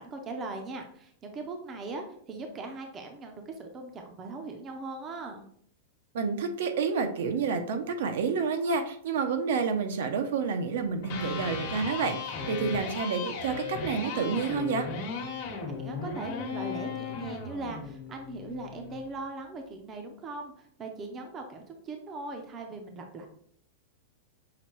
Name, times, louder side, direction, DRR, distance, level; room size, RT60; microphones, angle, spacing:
voice 1, 0.0-5.4 15.8-23.3, right 3 dB, 20° right, 4 dB, 0.5 m, -39 dB
voice 2, 6.1-14.9, right 5 dB, 70° right, 6 dB, 0.6 m, -29 dB
Electric guitar, 10.9-19.0, left 5 dB, 50° left, 1.0 m, -36 dB
5.7 x 2.2 x 3.0 m, 0.63 s
supercardioid pair, 160°, 0 cm